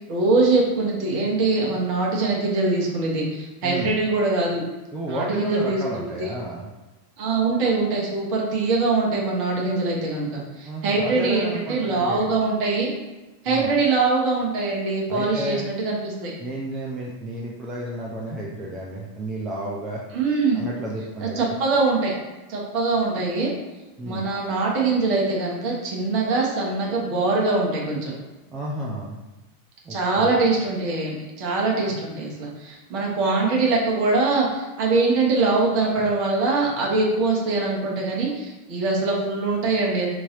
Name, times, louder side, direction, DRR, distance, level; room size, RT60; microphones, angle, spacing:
voice 1, 0.1-4.6 5.1-6.3 7.2-12.9 13.4-16.3 20.1-20.6 21.2-22.1 22.5-23.5 24.0-28.1 29.9-40.1, right 3 dB, 45° right, -2 dB, 1.0 m, -23 dB
voice 2, 3.6-3.9 4.9-6.7 10.6-12.3 13.5-13.7 15.1-15.6 16.4-20.0 20.5-21.6 24.0-24.2 28.5-29.2 29.8-30.3, right 1 dB, 20° right, -4 dB, 0.5 m, -32 dB
3.0 x 2.7 x 3.6 m, 1.1 s
figure-of-eight pair, 90°, 0 cm